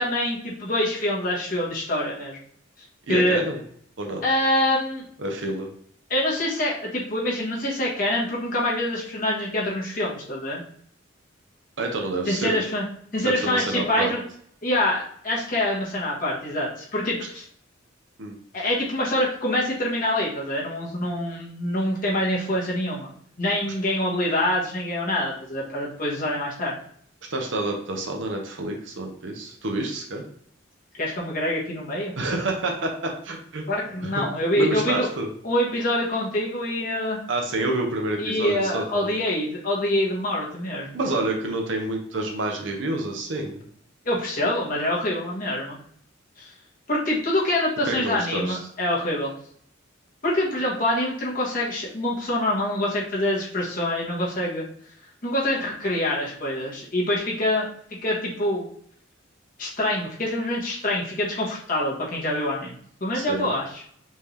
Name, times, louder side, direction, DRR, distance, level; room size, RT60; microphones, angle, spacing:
voice 1, 0.0-2.4 3.1-3.4 4.2-5.0 6.1-10.6 12.3-12.8 13.1-14.2 14.6-17.4 18.5-23.1 23.4-26.8 31.0-32.1 33.7-35.1 35.4-37.2 38.2-41.0 44.0-45.8 46.4-46.5 46.9-49.3 50.2-54.6 55.2-57.7 58.0-58.7 59.6-63.8, left 1 dB, 45° left, -5 dB, 1.5 m, -25 dB
voice 2, 3.1-3.6 4.0-4.2 5.2-5.7 11.8-12.6 13.2-14.1 18.2-18.4 27.3-30.2 32.2-33.6 34.0-34.1 34.6-35.3 37.3-39.2 40.9-43.6 47.8-48.6 63.1-63.5, right 2 dB, 65° right, 2 dB, 0.8 m, -28 dB
5.4 x 2.8 x 3.3 m, 0.63 s
head